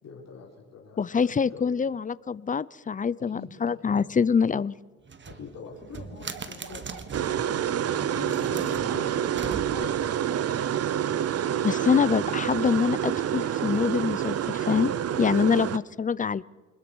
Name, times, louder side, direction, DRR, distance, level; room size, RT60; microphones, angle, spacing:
voice 1, 0.0-1.7 3.3-4.0 5.2-10.4 14.7-15.7, left 5 dB, 60° left, -1 dB, 4.6 m, -44 dB
voice 2, 1.0-4.7 11.6-14.9 15.2-16.4, left 6 dB, 25° left, 20 dB, 0.6 m, -25 dB
sound 1, 5.1-7.4 8.1-10.1, right 5 dB, 40° right, 1.6 m, -40 dB
Bark, 6.3-13.3 13.6-13.8, right 7 dB, 75° right, 3.1 m, -47 dB
sound 2, 7.1-15.8, right 10 dB, 55° right, 0.8 m, -28 dB
26.0 x 21.0 x 6.3 m, 1.3 s
cardioid pair, 90°, 30 cm